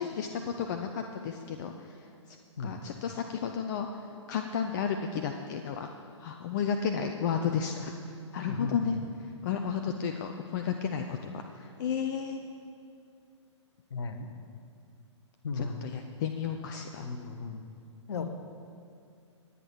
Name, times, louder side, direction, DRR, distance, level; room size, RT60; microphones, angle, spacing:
voice 1, 0.0-2.4 2.6-3.9 4.3-5.9 6.2-7.9 8.3-9.0 9.4-11.2 11.5-12.4 15.6-17.0 18.1-18.3, left 7 dB, 40° left, 5 dB, 0.7 m, -32 dB
voice 2, 8.5-9.0 13.9-14.3 15.4-15.9 17.0-17.6 18.1-18.3, left 3 dB, 60° left, 6 dB, 1.3 m, -36 dB
24.0 x 8.5 x 4.7 m, 2.4 s
figure-of-eight pair, 120°, 16 cm